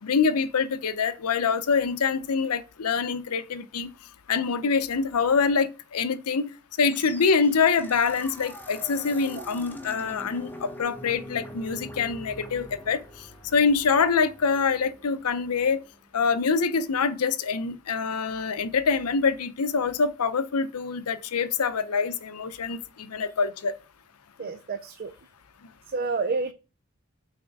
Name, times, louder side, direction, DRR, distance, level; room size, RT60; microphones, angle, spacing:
voice 1, 0.0-3.9 4.3-6.5 6.8-13.0 13.5-15.8 16.1-23.7, left 5 dB, 85° left, 0.6 m, -25 dB
sound 1, 6.9-16.0, equal, 10° left, 0.9 m, -44 dB
voice 2, 24.4-25.1 25.9-26.5, right 4 dB, 40° right, 0.5 m, -29 dB
6.3 x 4.2 x 4.7 m
head